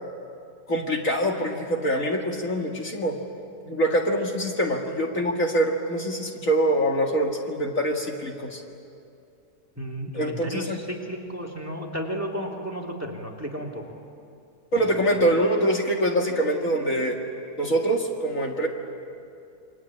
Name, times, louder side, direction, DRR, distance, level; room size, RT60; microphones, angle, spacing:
voice 1, 0.7-3.2 3.7-8.6 10.1-10.8 14.7-17.2 17.6-18.7, right 1 dB, 55° left, 1 dB, 2.4 m, -24 dB
voice 2, 9.8-13.9, equal, 10° right, -1 dB, 3.0 m, -33 dB
28.5 x 24.0 x 8.7 m, 2.6 s
omnidirectional pair, 1.7 m